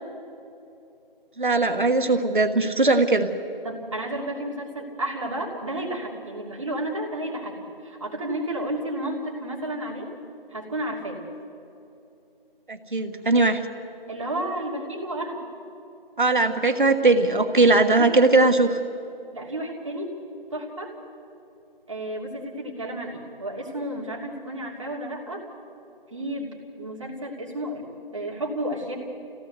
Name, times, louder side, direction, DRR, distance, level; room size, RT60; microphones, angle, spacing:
voice 1, 1.4-3.3 12.7-13.6 16.2-18.8, right 3 dB, 55° right, 7 dB, 1.4 m, -19 dB
voice 2, 3.6-7.5 7.8-10.1 10.5-11.2 14.1-15.4 18.0-18.1 19.3-20.2 20.5-20.9 21.9-25.4 26.1-27.9 28.1-28.9, right 1 dB, 30° right, -2 dB, 3.0 m, -32 dB
25.5 x 17.0 x 8.1 m, 2.8 s
figure-of-eight pair, 170°, 29 cm